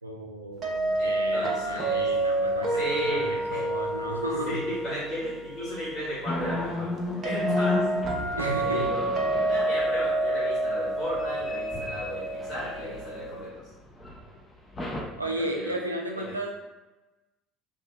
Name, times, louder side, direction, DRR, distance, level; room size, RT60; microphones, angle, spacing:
voice 1, 0.0-4.6 8.4-8.9 15.2-16.5, right 1 dB, 85° right, 1 dB, 0.3 m, -34 dB
sound 1, 0.6-13.5, right 2 dB, 40° right, 0.6 m, -29 dB
voice 2, 1.0-2.1 2.7-3.6 4.5-6.9 7.2-8.0 8.6-13.5 15.3-15.7 16.1-16.3, left 1 dB, 40° left, -11 dB, 1.3 m, -35 dB
sound 2, 6.3-9.8 11.1-13.4 14.0-14.2 14.8-15.0, left 2 dB, 20° left, 0.6 m, -33 dB
3.3 x 2.7 x 2.3 m, 1.1 s
figure-of-eight pair, 65°, 0 cm